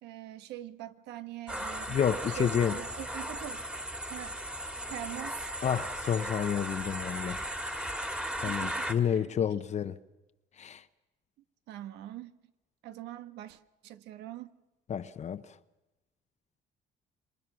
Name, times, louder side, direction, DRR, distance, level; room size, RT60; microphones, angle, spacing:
voice 1, 0.0-2.0 2.3-3.7 4.1-4.4 4.9-5.5 8.4-9.3 11.7-12.3 12.8-14.5, right 13 dB, 85° right, 1.4 m, -43 dB
sound 1, 1.5-8.9, right 1 dB, 5° right, 2.0 m, -36 dB
voice 2, 1.9-2.8 5.6-7.4 8.4-10.0 10.6-10.8 14.9-15.5, left 8 dB, 40° left, 0.8 m, -30 dB
27.5 x 24.5 x 6.2 m
cardioid pair, 110°, 17 cm